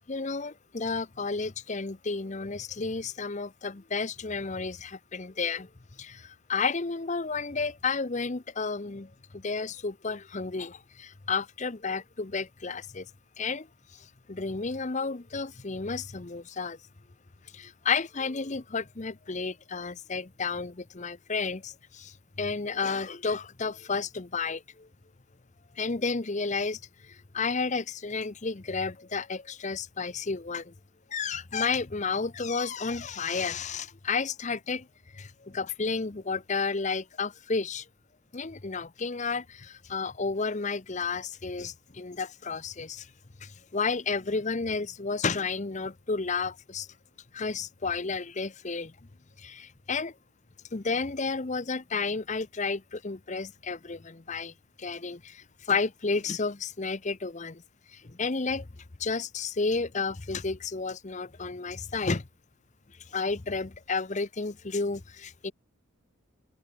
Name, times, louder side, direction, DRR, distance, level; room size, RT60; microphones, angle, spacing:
voice 1, 0.1-5.7 6.0-13.1 13.4-13.7 13.9-16.8 17.5-24.9 25.8-30.7 31.1-34.9 35.1-37.9 38.3-43.1 43.4-46.9 47.3-48.9 49.4-50.1 50.7-57.6 57.9-58.7 59.0-62.3 63.1-65.5, left 4 dB, 35° left, 0.7 m, -32 dB
open air
head